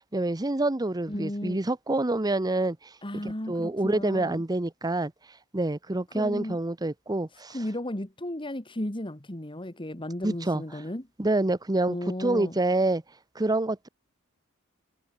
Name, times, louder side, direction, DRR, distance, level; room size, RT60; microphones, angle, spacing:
voice 1, 0.0-2.8 3.2-5.1 5.5-7.6 10.2-10.6 11.2-13.0 13.3-13.9, right 2 dB, 20° right, 0.8 m, -27 dB
voice 2, 1.1-1.6 3.0-4.4 6.1-6.6 7.5-11.1 11.9-12.6, left 1 dB, 25° left, 2.1 m, -34 dB
head